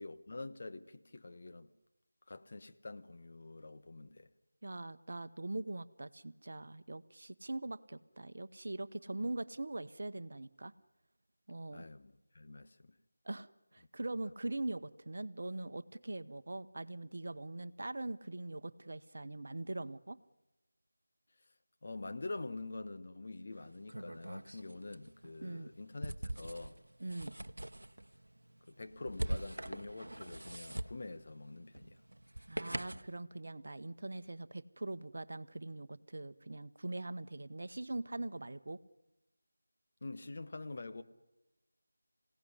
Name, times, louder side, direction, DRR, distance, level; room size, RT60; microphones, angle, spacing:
voice 1, 0.0-1.7 2.3-4.3 11.7-13.0 21.8-26.8 28.7-32.0 40.0-41.0, left 2 dB, 45° left, 1.3 m, -46 dB
voice 2, 4.6-10.7 11.5-11.9 13.2-20.2 25.4-25.7 27.0-27.3 32.5-38.8, right 2 dB, 55° right, 1.0 m, -42 dB
sound 1, 23.5-33.2, right 1 dB, 80° right, 0.8 m, -44 dB
26.5 x 17.0 x 9.9 m
figure-of-eight pair, 165°, 0 cm